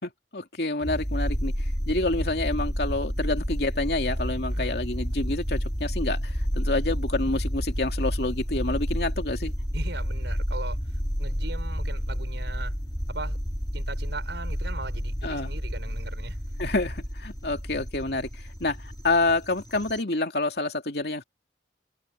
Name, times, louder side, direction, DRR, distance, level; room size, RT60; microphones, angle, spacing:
voice 1, 0.0-9.5 15.2-15.5 16.6-21.2, left 2 dB, 65° left, 2.8 m, -28 dB
sound 1, 0.8-20.0, equal, 25° left, 4.0 m, -30 dB
voice 2, 9.7-10.8 11.2-12.7 13.1-13.4 13.7-16.4, right 3 dB, 80° right, 5.4 m, -39 dB
open air
head